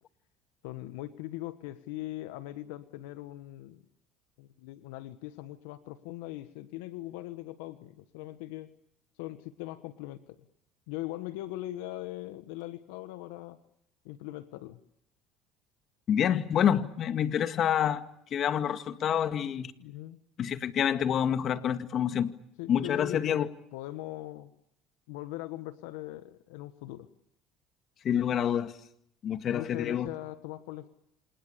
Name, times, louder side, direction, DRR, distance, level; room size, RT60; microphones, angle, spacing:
voice 1, 0.6-3.8 4.4-8.7 9.2-10.3 10.9-13.6 14.0-14.8 19.8-20.2 22.6-23.4 23.7-24.5 25.1-27.1 29.5-30.9, left 16 dB, 80° left, 1.5 m, -40 dB
voice 2, 16.1-18.0 18.3-19.7 20.4-22.3 22.7-23.5 28.0-28.8 29.2-30.1, left 9 dB, 50° left, 2.1 m, -27 dB
28.5 x 27.5 x 7.0 m
supercardioid pair, 80°, 0 cm